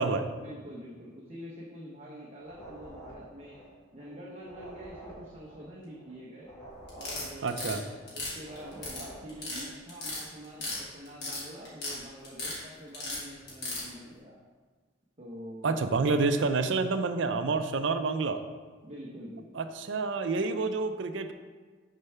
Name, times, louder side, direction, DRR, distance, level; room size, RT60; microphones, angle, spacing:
voice 1, 0.4-3.6 3.9-6.5 6.9-14.4 15.2-16.1 18.8-19.4, equal, 35° right, -5 dB, 0.9 m, -46 dB
sound 1, 2.4-9.7, right 1 dB, 20° left, 2.4 m, -49 dB
sound 2, 6.9-7.8 8.1-9.0 9.3-9.6 9.9-10.8 11.1-12.0 12.2-12.6 12.9-13.8, left 2 dB, 55° left, 2.4 m, -35 dB
voice 2, 7.4-7.8 15.6-18.4 19.5-21.3, right 4 dB, 70° right, 9 dB, 0.5 m, -28 dB
6.7 x 4.6 x 5.6 m, 1.4 s
head